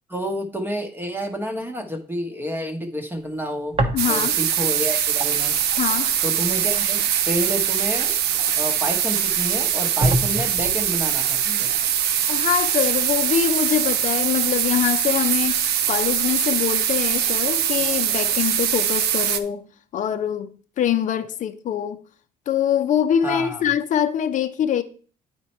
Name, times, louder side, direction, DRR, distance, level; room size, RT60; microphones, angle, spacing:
voice 1, 0.1-3.8 4.1-5.6 6.2-8.2 8.6-11.7 23.2-23.6, equal, 10° right, 1.1 m, -29 dB
sound 1, 3.7-4.5 4.8-8.8 9.4-9.5 10.0-10.9, right 1 dB, 30° right, 1.1 m, -28 dB
voice 2, 3.9-4.3 5.8-6.1 12.3-19.7 19.9-22.0 22.5-24.8, left 9 dB, 50° left, 0.7 m, -24 dB
sound 2, 4.0-19.4, right 10 dB, 75° right, 0.6 m, -22 dB
8.9 x 4.4 x 4.3 m
cardioid pair, 110°, 17 cm